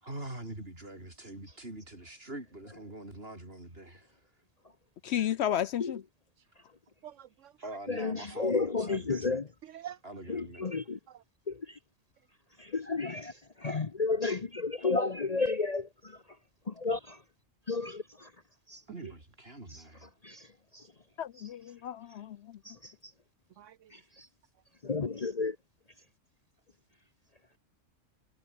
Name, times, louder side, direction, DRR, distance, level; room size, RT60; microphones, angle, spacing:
voice 1, 0.0-4.1 7.6-9.4 10.0-10.6 18.9-20.1, right 1 dB, 50° right, 6.9 m, -44 dB
voice 2, 5.0-6.0 21.2-22.4, left 10 dB, 65° left, 0.8 m, -32 dB
voice 3, 7.0-7.5 8.8-8.9 9.6-10.0 11.1-11.2 18.9-19.1 23.6-23.9, right 11 dB, 75° right, 1.1 m, -46 dB
voice 4, 7.9-9.4 10.3-11.0 11.5-11.6 12.6-13.3 13.6-15.9 16.8-17.2 17.7-18.3 18.7-18.8 20.2-20.4 22.7-22.8 24.8-25.6, left 4 dB, 35° left, 0.9 m, -31 dB
omnidirectional pair, 1.3 m